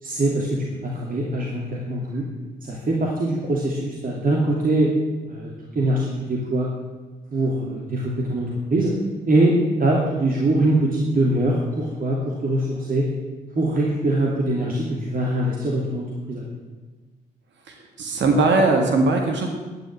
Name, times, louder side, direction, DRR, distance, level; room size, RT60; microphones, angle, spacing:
voice 1, 0.0-2.2 2.7-4.9 5.3-6.7 7.3-8.9 9.3-13.1 13.5-16.4, right 1 dB, 45° right, -3 dB, 2.7 m, -23 dB
voice 2, 17.7-19.5, right 3 dB, 65° right, 3 dB, 1.9 m, -20 dB
11.0 x 10.5 x 7.6 m, 1.3 s
hypercardioid pair, 40°, 20 cm